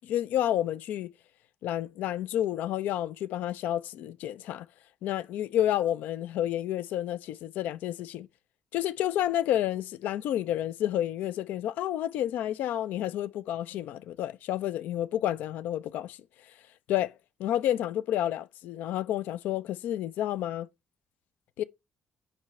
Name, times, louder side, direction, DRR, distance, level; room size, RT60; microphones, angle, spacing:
voice 1, 0.0-1.1 1.6-4.7 5.0-8.3 8.7-16.2 16.9-17.1 17.4-20.7 21.6-21.7, left 12 dB, 65° left, 0.4 m, -30 dB
8.6 x 5.3 x 3.1 m
hypercardioid pair, 45°, 3 cm